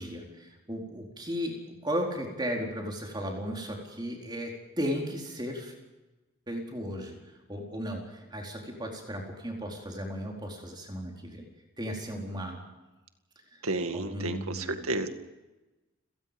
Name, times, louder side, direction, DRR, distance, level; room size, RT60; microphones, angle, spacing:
voice 1, 0.0-1.5 1.8-5.7 6.5-7.2 7.5-11.4 11.8-12.6 13.9-14.9, equal, 20° right, 0 dB, 4.3 m, -35 dB
voice 2, 13.6-15.1, right 2 dB, 85° right, 7 dB, 2.1 m, -31 dB
30.0 x 18.5 x 5.3 m, 1.1 s
head